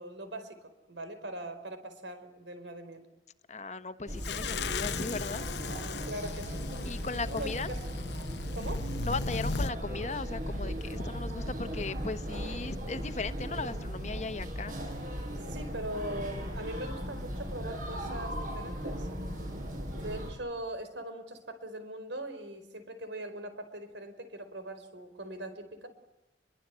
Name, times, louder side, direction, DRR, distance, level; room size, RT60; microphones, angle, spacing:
voice 1, 0.0-3.0 6.1-6.6 7.4-7.8 8.5-8.9 15.5-19.1 20.0-25.9, right 1 dB, 90° right, 10 dB, 4.7 m, -41 dB
voice 2, 3.5-5.4 6.8-7.7 9.0-14.8, left 3 dB, 40° left, 11 dB, 1.1 m, -37 dB
sound 1, 4.1-20.3, equal, 50° right, 6.5 m, -37 dB
sound 2, 4.2-9.7, left 5 dB, 70° left, 0.9 m, -38 dB
29.5 x 23.0 x 8.3 m, 0.98 s
head